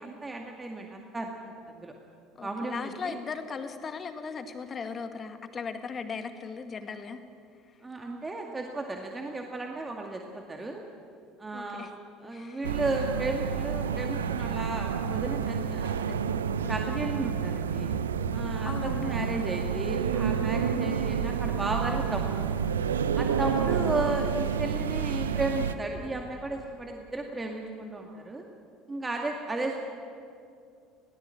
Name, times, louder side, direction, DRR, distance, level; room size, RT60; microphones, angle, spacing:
voice 1, 0.0-1.9 2.4-3.2 7.8-10.8 11.4-16.1 16.6-17.9 18.3-22.5 23.2-28.4 28.9-29.8, right 2 dB, 20° right, 1 dB, 2.1 m, -34 dB
voice 2, 2.4-7.2 11.5-11.9 12.3-12.7 18.6-19.3 20.7-20.9 23.6-23.8, left 5 dB, 35° left, 8 dB, 2.0 m, -38 dB
sound 1, 12.6-25.7, right 7 dB, 80° right, 0.7 m, -29 dB
22.0 x 17.0 x 7.9 m, 2.5 s
figure-of-eight pair, 65°, 0 cm